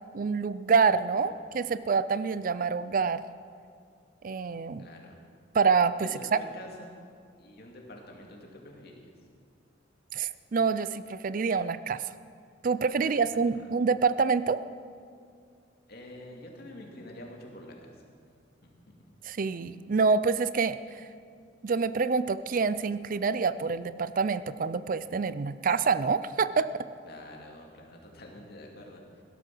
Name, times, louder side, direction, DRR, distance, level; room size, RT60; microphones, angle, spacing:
voice 1, 0.1-3.3 4.2-4.9 5.5-6.4 10.1-12.0 12.6-14.6 19.2-21.0 21.6-26.9, right 5 dB, 50° right, 15 dB, 0.4 m, -27 dB
voice 2, 4.8-5.2 6.0-7.0 7.4-9.1 13.0-13.5 15.9-18.0 18.6-19.0 27.0-29.2, left 1 dB, 60° left, 0 dB, 2.7 m, -47 dB
16.5 x 12.5 x 6.2 m, 2.2 s
head